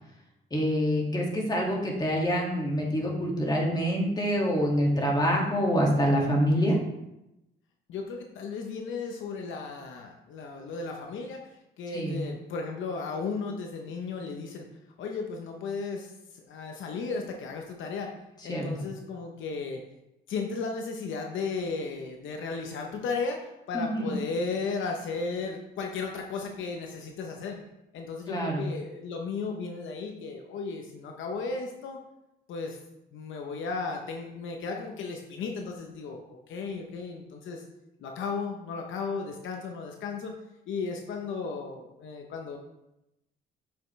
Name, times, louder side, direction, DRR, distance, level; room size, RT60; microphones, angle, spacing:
voice 1, 0.5-6.8 11.9-12.2 18.5-18.7 23.7-24.2 28.3-28.6, equal, 20° left, -2 dB, 2.0 m, -26 dB
voice 2, 7.9-14.7 15.0-18.1 18.4-19.9 20.3-27.6 27.9-32.0 32.5-32.8 33.1-37.6 38.0-40.4 40.7-42.6, left 4 dB, 75° left, 2 dB, 0.9 m, -35 dB
7.0 x 5.6 x 3.2 m, 0.89 s
cardioid pair, 90°, 20 cm